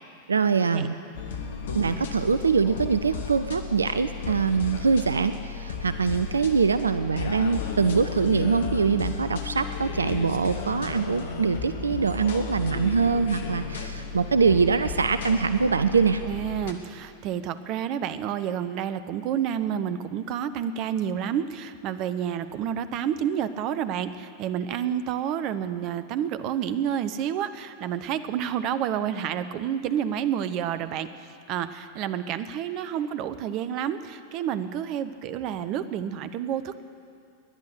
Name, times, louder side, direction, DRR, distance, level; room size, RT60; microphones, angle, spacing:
voice 1, 0.3-1.0 1.7-16.2, right 5 dB, 75° right, 11 dB, 0.4 m, -23 dB
sound 1, 1.1-16.7, left 5 dB, 60° left, 1.6 m, -34 dB
voice 2, 16.3-36.8, right 9 dB, 40° right, 13 dB, 0.8 m, -29 dB
20.0 x 10.5 x 6.8 m, 2.3 s
figure-of-eight pair, 90°, 0 cm